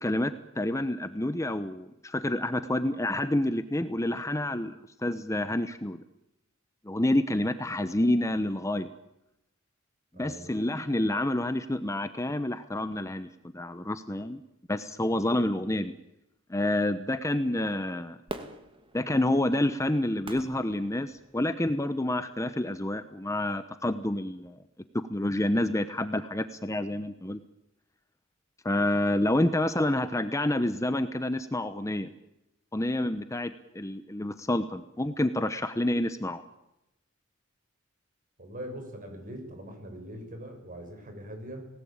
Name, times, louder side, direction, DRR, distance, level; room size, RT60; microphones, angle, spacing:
voice 1, 0.0-6.0 6.8-8.9 10.2-13.3 13.5-14.4 14.7-15.9 16.5-18.2 18.9-24.6 25.1-27.4 28.6-32.1 32.7-36.4, left 1 dB, 15° left, 11 dB, 0.9 m, -28 dB
voice 2, 10.1-10.5 38.4-41.7, equal, 40° right, 5 dB, 6.8 m, -42 dB
Fireworks, 18.3-21.6 22.2-22.3, right 1 dB, 25° right, 2.3 m, -44 dB
29.5 x 19.0 x 8.9 m, 0.91 s
head